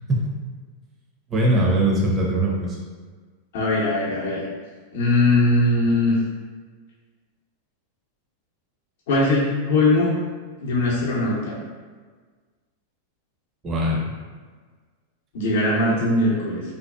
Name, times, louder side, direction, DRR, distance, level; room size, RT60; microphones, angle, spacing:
voice 1, 1.3-2.8 13.6-14.1, right 1 dB, 30° right, -3 dB, 0.6 m, -21 dB
voice 2, 3.5-4.4 4.9-6.2 9.1-10.1 10.6-11.5 15.3-16.6, left 2 dB, 70° left, -5 dB, 0.6 m, -20 dB
2.6 x 2.3 x 2.2 m, 1.5 s
hypercardioid pair, 110°, 0 cm